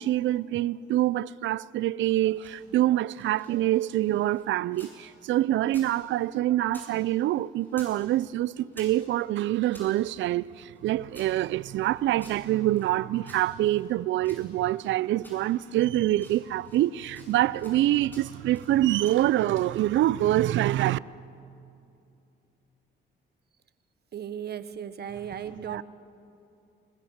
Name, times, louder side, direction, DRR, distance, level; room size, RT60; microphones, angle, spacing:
voice 1, 0.0-21.0 25.5-25.8, right 14 dB, 70° right, 0.4 m, -25 dB
sound 1, 2.2-5.0 5.3-6.9 7.2-8.0 8.3-9.9 10.4-12.9 13.2-14.9 15.2-15.8 16.1-16.9 17.1-17.8 18.1-18.7 19.0-19.8, equal, 10° left, 7.9 m, -53 dB
voice 2, 24.1-25.8, right 8 dB, 55° right, 1.2 m, -36 dB
21.0 x 21.0 x 7.2 m
cardioid pair, 90°, 20 cm